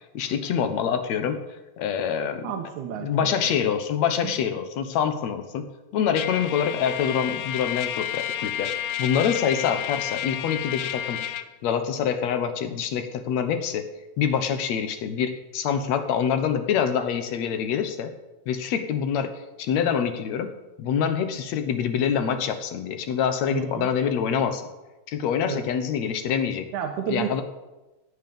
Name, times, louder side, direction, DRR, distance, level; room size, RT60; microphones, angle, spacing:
voice 1, 0.1-2.5 3.0-5.7 5.9-8.7 9.0-11.3 11.6-13.9 14.2-18.1 18.5-19.3 19.6-20.5 20.8-24.7 25.1-26.7 27.1-27.4, left 8 dB, 70° left, 8 dB, 2.3 m, -25 dB
voice 2, 2.4-3.4 4.2-4.3 23.5-23.9 25.4-25.7 26.7-27.4, right 9 dB, 85° right, 4 dB, 2.5 m, -31 dB
Trumpet, 6.1-11.5, left 11 dB, 90° left, 2.1 m, -31 dB
16.0 x 9.7 x 5.4 m, 1.1 s
omnidirectional pair, 3.3 m